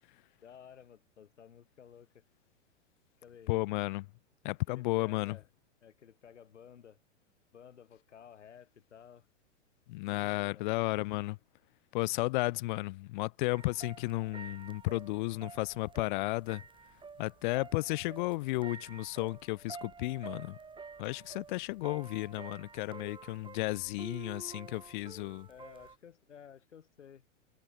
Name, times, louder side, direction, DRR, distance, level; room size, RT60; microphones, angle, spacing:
voice 1, 0.0-2.2 3.2-3.5 4.7-5.5 5.8-7.0 7.5-9.3 25.5-27.3, left 8 dB, 75° left, 2.6 m, -54 dB
voice 2, 3.5-4.1 4.4-5.4 9.9-11.4 11.9-16.6 17.2-20.6 21.0-25.5, left 21 dB, 40° left, 0.6 m, -33 dB
sound 1, 13.5-26.0, right 5 dB, 15° right, 4.6 m, -50 dB
figure-of-eight pair, 105°, 37 cm